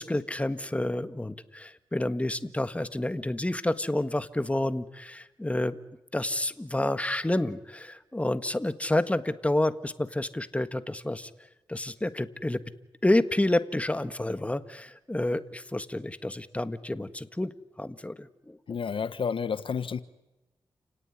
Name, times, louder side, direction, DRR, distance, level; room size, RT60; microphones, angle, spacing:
voice 1, 0.0-5.8 6.1-11.3 11.7-12.6 13.0-18.6, left 1 dB, 15° left, 1.6 m, -29 dB
voice 2, 18.7-20.0, left 6 dB, 70° left, 1.2 m, -30 dB
30.0 x 18.0 x 9.9 m
cardioid pair, 55°, 9 cm